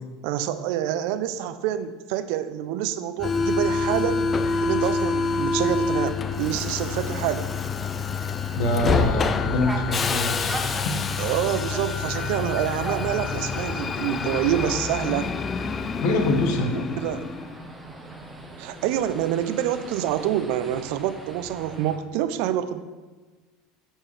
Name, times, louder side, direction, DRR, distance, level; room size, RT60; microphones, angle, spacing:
voice 1, 0.2-4.3 4.6-7.5 11.2-15.3 16.7-17.2 18.6-22.8, right 11 dB, 65° right, 11 dB, 0.5 m, -27 dB
Subway metro underground, 3.2-17.5, left 4 dB, 30° left, 0.6 m, -27 dB
sound 1, 4.4-22.0, right 1 dB, 10° right, 1.2 m, -42 dB
voice 2, 8.6-11.0 16.0-16.7, left 1 dB, 65° left, 4 dB, 1.3 m, -25 dB
13.5 x 4.5 x 3.3 m, 1.3 s
hypercardioid pair, 80°, 0 cm